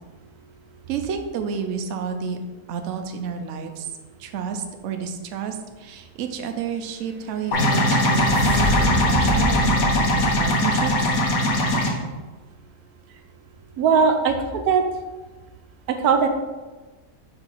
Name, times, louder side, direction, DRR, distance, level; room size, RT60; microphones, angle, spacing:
voice 1, 0.9-2.4 2.7-3.9 4.2-11.1, right 6 dB, 65° right, 6 dB, 0.9 m, -30 dB
sound 1, 7.3-11.4, equal, 25° right, 0.7 m, -28 dB
sound 2, 7.5-11.9, left 1 dB, 70° left, 1.3 m, -20 dB
voice 2, 13.8-14.8 15.9-16.3, right 5 dB, 85° right, 6 dB, 1.2 m, -19 dB
5.7 x 3.9 x 4.5 m, 1.2 s
omnidirectional pair, 1.6 m